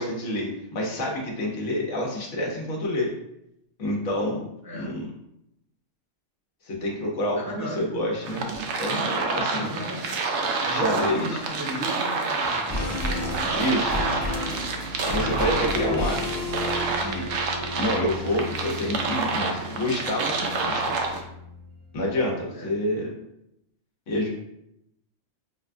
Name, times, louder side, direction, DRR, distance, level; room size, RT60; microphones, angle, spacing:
voice 1, 0.0-3.1 3.8-4.5 4.7-5.0 6.6-8.5 8.8-9.7 10.7-11.4 13.5-14.0 15.0-16.3 16.9-17.3 17.8-21.0 21.9-23.1 24.1-24.3, left 1 dB, 75° left, -2 dB, 1.2 m, -28 dB
voice 2, 7.3-7.9 9.5-10.1 10.6-13.8 22.5-22.7, equal, 15° right, -6 dB, 0.8 m, -36 dB
sound 1, 8.2-21.2, right 3 dB, 70° right, 0.9 m, -28 dB
sound 2, 12.4-21.8 22.0-22.1, left 2 dB, 15° left, 1.0 m, -33 dB
5.5 x 2.2 x 2.5 m, 0.80 s
omnidirectional pair, 1.3 m